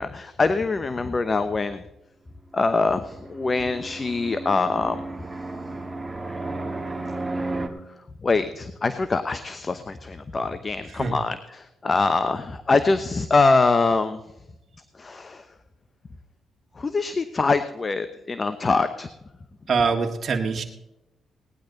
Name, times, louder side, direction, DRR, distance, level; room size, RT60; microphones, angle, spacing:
voice 1, 0.0-1.8 2.5-5.0 8.2-14.2 15.0-15.4 16.8-19.1, left 3 dB, 35° left, 11 dB, 0.9 m, -24 dB
Fixed-wing aircraft airplane, 2.8-7.7, right 2 dB, 15° right, 1.8 m, -33 dB
voice 2, 19.7-20.6, right 5 dB, 50° right, 1 dB, 1.7 m, -23 dB
18.0 x 10.5 x 4.0 m, 0.89 s
cardioid pair, 80°, 0 cm